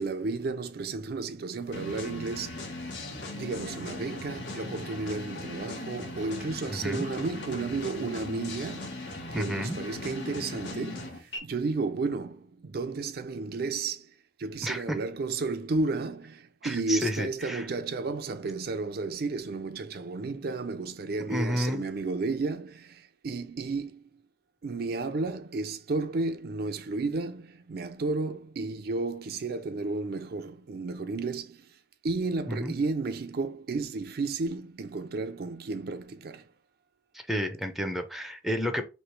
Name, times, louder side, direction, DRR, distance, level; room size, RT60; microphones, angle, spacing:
voice 1, 0.0-3.0 3.3-14.1 14.4-24.1 24.6-36.5, right 3 dB, 60° right, 0.5 m, -33 dB
sound 1, 1.7-11.4, left 2 dB, 80° left, 1.1 m, -39 dB
voice 2, 6.7-7.1 9.3-9.8 14.6-15.0 16.6-17.7 21.3-21.8 32.5-32.7 37.3-38.9, equal, ahead, 0.5 m, -31 dB
3.1 x 2.9 x 4.4 m
head